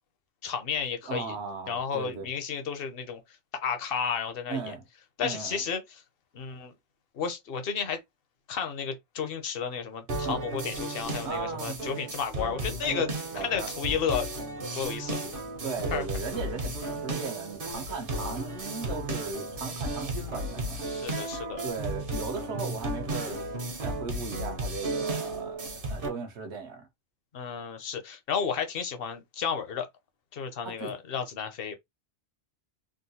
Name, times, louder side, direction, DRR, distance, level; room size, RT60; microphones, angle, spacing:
voice 1, 0.4-1.4 1.7-3.2 3.6-4.6 5.2-5.8 6.3-6.7 7.1-8.0 8.5-13.1 13.3-14.3 14.7-15.2 15.9-16.0 20.9-21.6 27.3-29.9 30.3-31.7, left 7 dB, 60° left, 0.9 m, -32 dB
voice 2, 1.0-2.3 4.5-4.8 5.2-5.6 10.2-10.4 11.2-11.8 12.8-13.7 15.6-21.0 21.6-23.4 23.8-25.6 25.9-26.9 30.6-30.9, right 5 dB, 75° right, 1.2 m, -37 dB
sound 1, 10.1-26.1, right 1 dB, 55° right, 1.1 m, -34 dB
3.7 x 2.2 x 2.7 m
omnidirectional pair, 1.2 m